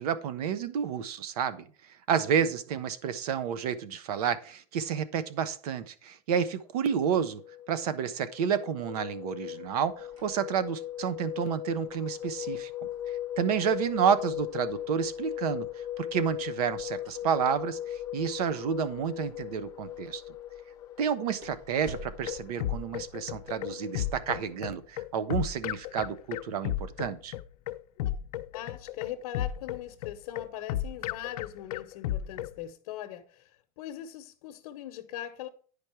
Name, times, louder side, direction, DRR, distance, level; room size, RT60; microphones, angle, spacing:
voice 1, 0.0-1.6 2.1-7.4 7.7-12.7 13.4-15.7 16.0-20.2 21.0-27.3, right 7 dB, 90° right, 1.0 m, -30 dB
sound 1, 6.8-24.6, left 12 dB, 20° left, 0.9 m, -39 dB
sound 2, 9.6-23.6, right 1 dB, 35° right, 3.2 m, -55 dB
sound 3, 21.9-32.6, left 12 dB, 80° left, 0.6 m, -34 dB
voice 2, 28.5-33.5 33.8-35.5, left 11 dB, 60° left, 0.9 m, -40 dB
9.8 x 5.2 x 4.5 m
supercardioid pair, 170°, 19 cm